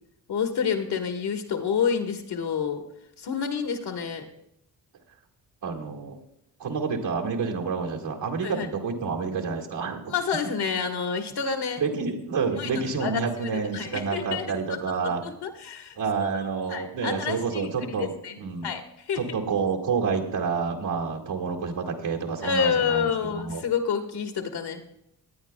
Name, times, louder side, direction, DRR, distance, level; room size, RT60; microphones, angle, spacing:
voice 1, 0.3-2.8 3.2-4.2 8.4-8.7 10.1-11.8 12.6-14.8 15.0-18.4 18.6-19.2 22.4-24.8, left 6 dB, 65° left, 5 dB, 1.6 m, -29 dB
voice 2, 5.6-6.2 6.6-10.1 11.8-15.2 16.0-18.7 19.2-23.6, right 5 dB, 75° right, 0 dB, 2.1 m, -29 dB
18.5 x 9.4 x 2.3 m, 0.78 s
supercardioid pair, 55°, 43 cm